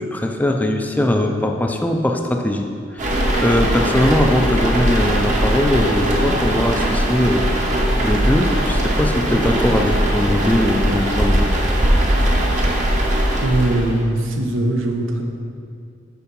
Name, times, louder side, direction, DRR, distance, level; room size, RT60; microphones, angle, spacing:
voice 1, 0.0-11.5, left 1 dB, 10° left, 4 dB, 0.4 m, -20 dB
sound 1, 3.0-14.0, right 1 dB, 40° right, 0.9 m, -19 dB
voice 2, 13.4-15.2, right 1 dB, 85° right, 2 dB, 0.8 m, -20 dB
6.9 x 4.6 x 5.3 m, 2.3 s
head